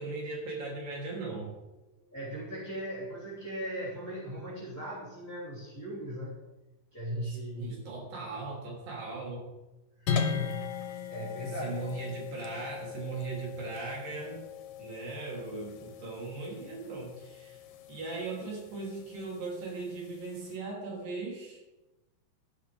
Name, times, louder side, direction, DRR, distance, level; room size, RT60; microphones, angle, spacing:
voice 1, 0.0-1.5 7.2-9.4 11.6-14.4 14.8-17.6 17.9-21.6, right 3 dB, 85° right, -3 dB, 4.8 m, -38 dB
voice 2, 2.0-6.4 6.9-7.7 10.0-11.8, equal, 5° left, -8 dB, 2.6 m, -38 dB
sound 1, 10.1-20.6, left 6 dB, 90° left, 2.8 m, -39 dB
12.5 x 11.5 x 3.5 m, 1.0 s
omnidirectional pair, 3.9 m